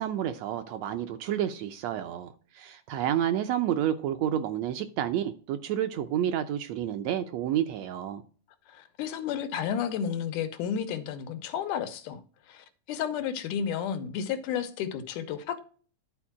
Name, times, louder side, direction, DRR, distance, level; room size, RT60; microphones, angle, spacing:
voice 1, 0.0-8.2, right 10 dB, 75° right, 1.6 m, -30 dB
voice 2, 8.7-12.2 12.5-15.6, left 8 dB, 90° left, 2.4 m, -32 dB
11.5 x 4.5 x 6.0 m
omnidirectional pair, 3.5 m